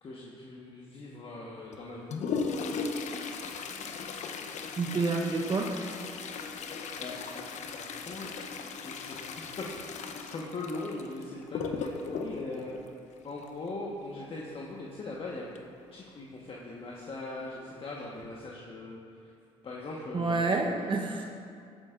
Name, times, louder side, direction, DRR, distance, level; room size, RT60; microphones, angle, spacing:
voice 1, 0.0-2.1 7.0-7.3 7.7-8.5 8.8-9.2 9.6-12.8 13.2-15.4 15.9-19.0 19.6-20.9, left 2 dB, 45° left, -4 dB, 1.4 m, -40 dB
Toilet flush, 1.7-13.7 15.5-15.6 16.0-16.1 16.9-17.0 17.6-17.9 18.3-18.5, left 5 dB, 60° left, 0.8 m, -37 dB
voice 2, 4.8-5.7 20.1-21.2, right 3 dB, 40° right, 2 dB, 1.0 m, -28 dB
17.0 x 8.7 x 2.6 m, 2.4 s
hypercardioid pair, 60°, 13 cm